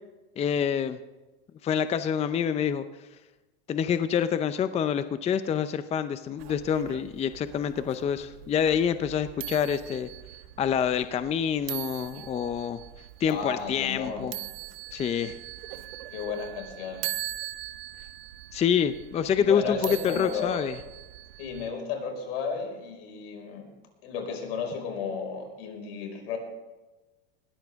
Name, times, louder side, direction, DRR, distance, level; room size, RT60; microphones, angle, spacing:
voice 1, 0.4-1.0 1.6-2.8 3.7-10.1 10.6-12.8 13.2-14.3 14.9-15.4 18.5-20.7, left 8 dB, 20° left, 11 dB, 0.6 m, -27 dB
sound 1, 6.4-21.7, right 15 dB, 80° right, 1.1 m, -41 dB
voice 2, 13.3-14.3 15.2-15.3 16.1-17.0 19.4-20.7 21.4-23.7 24.0-26.4, left 5 dB, 75° left, 3 dB, 5.2 m, -33 dB
20.0 x 15.0 x 3.6 m, 1.1 s
supercardioid pair, 130°, 30 cm